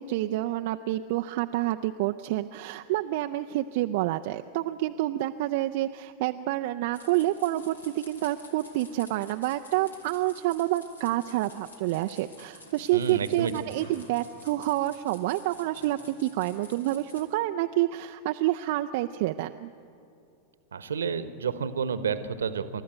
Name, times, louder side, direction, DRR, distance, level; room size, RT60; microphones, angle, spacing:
voice 1, 0.0-19.7, right 15 dB, 50° right, 7 dB, 0.5 m, -28 dB
sound 1, 6.9-17.2, left 2 dB, 75° left, 2.9 m, -50 dB
voice 2, 12.9-13.5 20.7-22.8, right 6 dB, 70° right, 12 dB, 1.1 m, -30 dB
29.0 x 13.5 x 8.0 m, 2.5 s
figure-of-eight pair, 90°, 0 cm